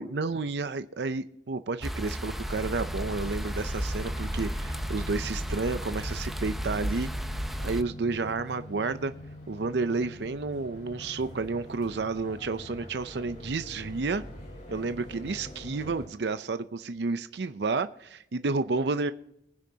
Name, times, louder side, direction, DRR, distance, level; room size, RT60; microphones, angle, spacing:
voice 1, 0.0-7.1 7.6-9.1 9.5-14.2 14.7-19.1, right 3 dB, 65° right, 11 dB, 0.6 m, -31 dB
sound 1, 1.8-7.8, equal, ahead, 0.7 m, -33 dB
sound 2, 2.2-8.2, left 3 dB, 70° left, 3.1 m, -58 dB
sound 3, 2.4-16.1, left 1 dB, 45° left, 6.4 m, -45 dB
23.0 x 9.7 x 2.8 m, 0.77 s
head